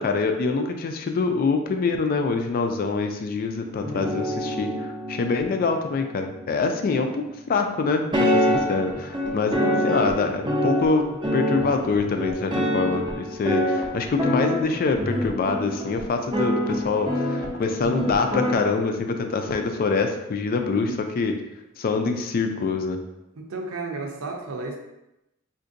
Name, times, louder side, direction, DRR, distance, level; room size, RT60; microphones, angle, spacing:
voice 1, 0.0-9.6 9.8-21.4 21.8-23.0, left 4 dB, 45° left, 5 dB, 0.3 m, -25 dB
sound 1, 3.8-7.3 8.1-18.6, equal, 25° right, 0.5 m, -26 dB
voice 2, 9.2-10.0 20.7-21.0 23.4-24.8, right 3 dB, 75° right, 2 dB, 0.6 m, -33 dB
3.8 x 2.6 x 2.5 m, 0.92 s
head